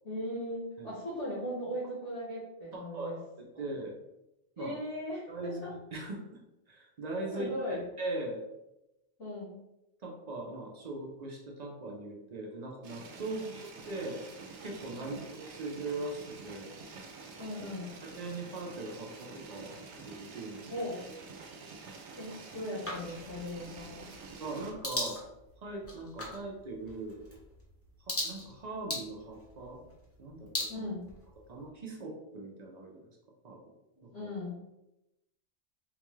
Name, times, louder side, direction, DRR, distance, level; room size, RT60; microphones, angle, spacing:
voice 1, 0.0-3.1 3.5-3.6 4.6-5.7 7.3-7.8 9.2-9.6 13.3-13.5 15.0-15.2 17.4-17.9 20.7-21.0 22.2-24.1 30.7-31.1 34.1-34.6, equal, 80° left, -9 dB, 1.6 m, -38 dB
voice 2, 2.7-4.0 4.6-4.8 5.3-6.2 6.7-8.4 10.0-14.2 14.6-16.7 18.0-20.7 24.4-25.2 25.6-27.2 28.1-29.9 30.2-30.8 31.5-33.1 33.4-33.7 34.0-34.3, right 2 dB, 45° right, 0 dB, 0.6 m, -40 dB
sound 1, 12.8-24.7, right 4 dB, 75° right, 0.9 m, -48 dB
sound 2, 22.8-31.7, left 1 dB, 15° left, 0.7 m, -41 dB
3.8 x 2.3 x 3.0 m, 0.90 s
omnidirectional pair, 1.2 m